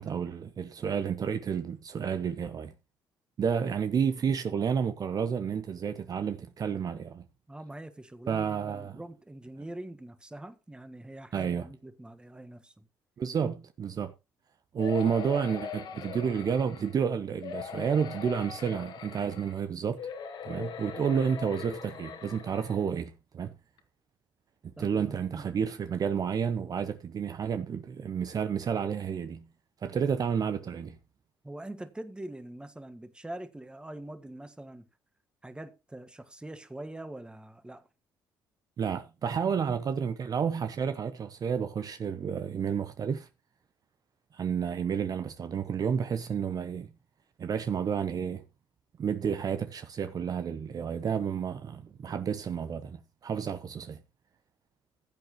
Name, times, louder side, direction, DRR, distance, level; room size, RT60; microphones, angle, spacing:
voice 1, 0.0-2.7 3.4-7.2 8.3-9.0 11.3-11.7 13.2-14.1 14.7-20.0 20.4-23.5 24.6-29.4 29.8-31.0 38.8-43.3 44.3-46.9 47.4-48.4 49.0-54.0, right 7 dB, 45° right, 0.8 m, -30 dB
voice 2, 7.5-12.9 24.8-25.4 31.4-34.9 35.4-37.9, right 1 dB, 10° right, 1.5 m, -43 dB
sound 1, 14.8-17.0 17.4-19.6 20.0-22.8 23.4-23.5 23.8-23.9, left 7 dB, 65° left, 2.0 m, -40 dB
15.0 x 8.0 x 3.1 m
supercardioid pair, 65°, 9 cm